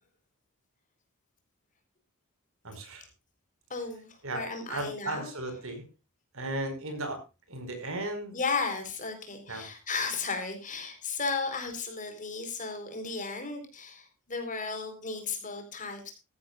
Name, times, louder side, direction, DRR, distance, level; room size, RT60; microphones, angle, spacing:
voice 1, 2.6-3.0 4.2-4.4 4.7-5.8 6.3-7.2 7.5-8.4 9.5-9.6, right 2 dB, 65° right, 7 dB, 5.1 m, -35 dB
voice 2, 3.7-5.3 8.3-16.1, left 4 dB, 35° left, 6 dB, 4.2 m, -34 dB
17.0 x 14.5 x 2.5 m, 0.28 s
head